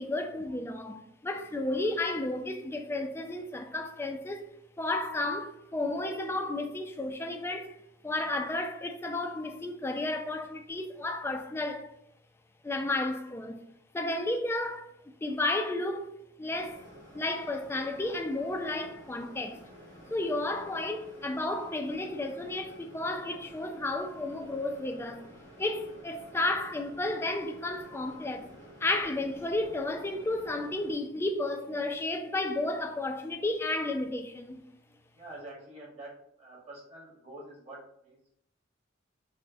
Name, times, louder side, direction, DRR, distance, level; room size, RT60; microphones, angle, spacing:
voice 1, 0.0-4.4 4.8-7.8 8.0-11.9 12.6-13.6 13.9-14.9 15.2-16.8 17.1-19.6 20.1-25.2 25.6-28.5 28.8-34.6, left 2 dB, 10° left, 0.3 m, -32 dB
sound 1, 16.5-30.9, equal, 80° right, 1.3 m, -51 dB
voice 2, 35.1-36.1 36.4-38.4, right 1 dB, 30° right, 1.3 m, -47 dB
4.2 x 2.1 x 2.6 m
head